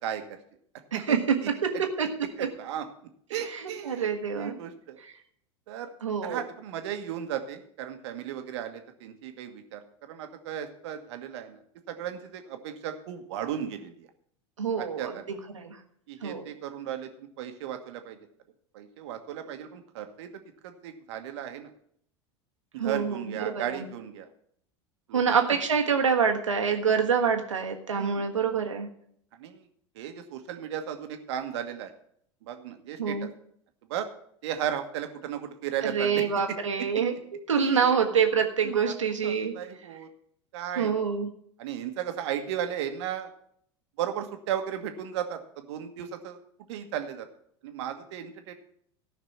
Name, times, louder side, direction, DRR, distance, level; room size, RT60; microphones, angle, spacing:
voice 1, 0.9-2.1 2.4-2.5 3.3-4.6 5.0-5.1 6.0-6.4 14.6-15.8 16.2-16.4 22.8-23.9 25.1-28.9 33.0-33.3 35.8-37.1 37.5-39.5 40.7-41.3, right 6 dB, 85° right, 4 dB, 1.5 m, -26 dB
voice 2, 3.3-5.0 5.7-5.9 6.2-11.6 11.9-14.1 14.8-15.1 16.1-18.2 18.7-20.3 20.6-21.7 22.7-24.3 25.1-25.4 27.9-28.3 29.4-29.7 29.9-31.9 32.4-33.3 33.9-34.1 34.4-36.2 37.6-37.9 38.6-38.9 39.2-40.1 40.5-40.9 41.6-43.3 44.0-46.4 46.7-47.3 47.6-48.5, right 10 dB, 65° right, 6 dB, 1.4 m, -35 dB
14.0 x 5.8 x 5.9 m, 0.67 s
hypercardioid pair, 85°, 16 cm